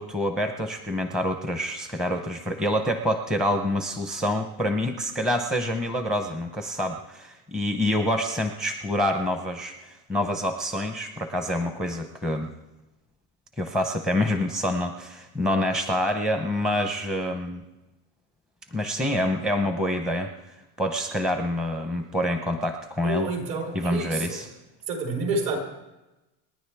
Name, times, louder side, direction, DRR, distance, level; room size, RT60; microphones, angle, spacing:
voice 1, 0.0-12.5 13.6-17.6 18.7-23.3 23.7-24.5, left 1 dB, ahead, 5 dB, 0.6 m, -27 dB
voice 2, 23.0-24.4 24.9-25.6, right 3 dB, 55° right, 1 dB, 4.6 m, -29 dB
29.0 x 10.5 x 3.4 m, 1.0 s
cardioid pair, 160°, 44 cm